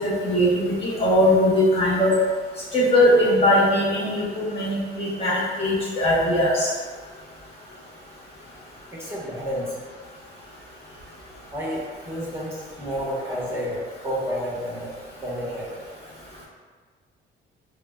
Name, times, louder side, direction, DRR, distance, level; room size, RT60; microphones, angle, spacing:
voice 1, 0.0-2.1 2.7-6.7, left 1 dB, 30° left, -8 dB, 1.3 m, -20 dB
voice 2, 8.9-9.8 11.5-14.9 15.2-15.8, equal, 15° right, -7 dB, 1.0 m, -30 dB
4.8 x 2.1 x 2.3 m, 1.5 s
cardioid pair, 90°, 20 cm